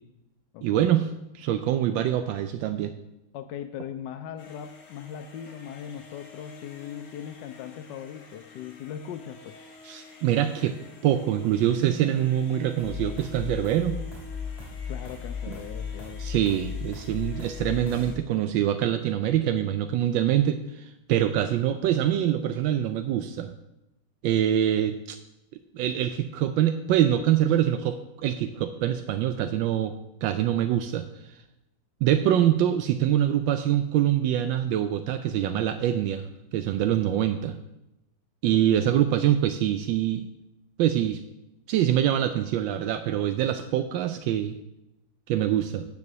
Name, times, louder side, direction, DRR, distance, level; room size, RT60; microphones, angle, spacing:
voice 1, 0.6-1.1 1.3-2.9 9.8-10.8 11.0-14.0 16.2-23.5 24.2-25.2 25.7-29.9 30.2-31.1 32.0-37.6 38.4-40.3 40.8-41.2 41.7-44.6 45.3-45.9, right 11 dB, 80° right, 9 dB, 1.3 m, -24 dB
voice 2, 3.3-9.6 14.9-16.3 38.7-38.9, left 9 dB, 75° left, 8 dB, 1.1 m, -39 dB
sound 1, 4.4-18.2, left 3 dB, 50° left, 1.5 m, -49 dB
sound 2, 12.8-18.1, left 6 dB, 15° left, 2.7 m, -36 dB
9.4 x 5.0 x 6.6 m, 0.88 s
omnidirectional pair, 2.1 m